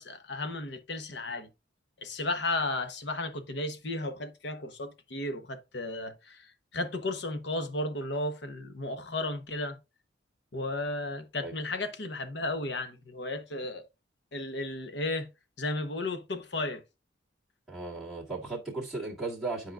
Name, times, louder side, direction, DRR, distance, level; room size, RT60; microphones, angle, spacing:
voice 1, 0.0-1.5 2.0-9.8 10.5-13.8 14.3-15.3 15.6-16.8, left 2 dB, 65° left, 1.1 m, -34 dB
voice 2, 17.7-19.7, right 3 dB, ahead, 1.9 m, -36 dB
10.5 x 4.8 x 2.5 m
head